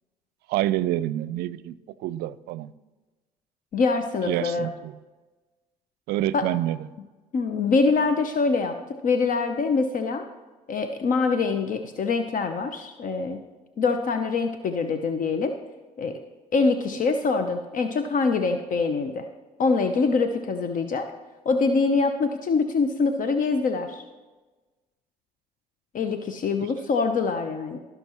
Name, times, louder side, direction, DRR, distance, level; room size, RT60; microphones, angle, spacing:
voice 1, 0.5-2.7 4.3-4.9 6.1-6.8, right 14 dB, 70° right, 18 dB, 0.5 m, -27 dB
voice 2, 3.7-4.7 6.3-6.5 7.3-8.8 9.0-10.2 10.7-13.4 13.8-15.5 16.0-16.2 16.5-19.3 19.6-21.1 21.4-24.0 25.9-27.8, left 4 dB, 50° left, 7 dB, 0.8 m, -24 dB
17.0 x 6.0 x 3.0 m, 1.2 s
hypercardioid pair, 60°, 17 cm